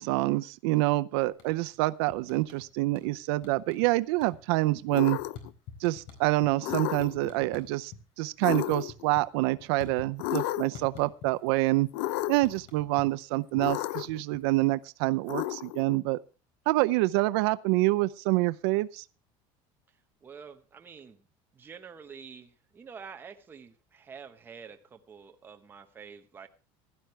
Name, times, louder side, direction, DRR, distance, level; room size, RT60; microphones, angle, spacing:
voice 1, 0.0-5.2 5.8-11.9 12.3-16.2 16.7-19.0, right 20 dB, 85° right, 0.6 m, -27 dB
sound 1, 1.3-1.8 2.1-3.1 3.4-3.9 4.2-8.0 8.3-10.4 10.7-11.6 11.9-14.7, left 7 dB, 50° left, 4.3 m, -48 dB
sound 2, 4.9-5.5 6.6-7.3 8.4-9.1 10.2-10.9 11.9-12.6 13.6-14.2 15.3-16.0, left 17 dB, 80° left, 0.6 m, -32 dB
voice 2, 20.2-21.2 21.5-26.5, right 6 dB, 15° right, 1.1 m, -47 dB
16.5 x 11.5 x 3.2 m
cardioid pair, 175°, 13 cm